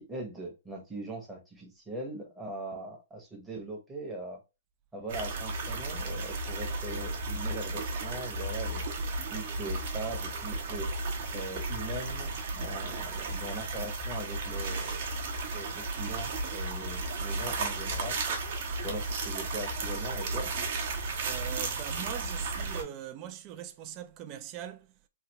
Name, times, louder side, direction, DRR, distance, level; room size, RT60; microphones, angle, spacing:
voice 1, 0.0-4.4 4.9-8.8 9.3-10.9 11.3-15.1 15.5-18.2 18.8-20.5, right 1 dB, 5° right, 0.9 m, -40 dB
sound 1, 5.1-22.8, right 3 dB, 45° right, 0.9 m, -34 dB
voice 2, 21.2-24.9, right 11 dB, 25° right, 0.4 m, -41 dB
3.2 x 2.3 x 2.9 m
hypercardioid pair, 160°, 0 cm